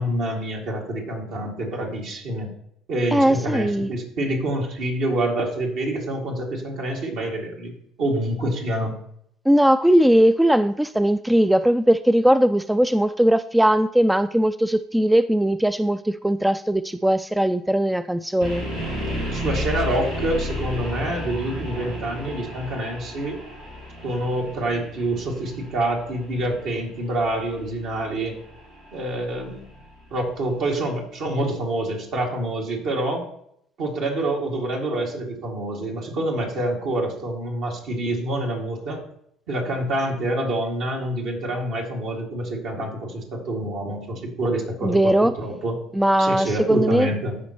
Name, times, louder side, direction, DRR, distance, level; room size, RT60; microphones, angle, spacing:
voice 1, 0.0-2.5 2.9-7.7 8.0-8.9 19.3-23.4 24.0-28.4 28.9-29.7 30.1-33.2 33.8-39.0 39.5-45.8 46.2-47.4, right 1 dB, 65° right, -1 dB, 2.2 m, -27 dB
voice 2, 3.1-3.9 9.5-18.7 44.8-45.3 46.0-47.1, right 1 dB, 5° right, 12 dB, 0.3 m, -19 dB
sound 1, 18.4-30.4, left 1 dB, 85° right, 3.5 m, -33 dB
14.0 x 5.2 x 3.0 m, 0.70 s
hypercardioid pair, 65°, 0 cm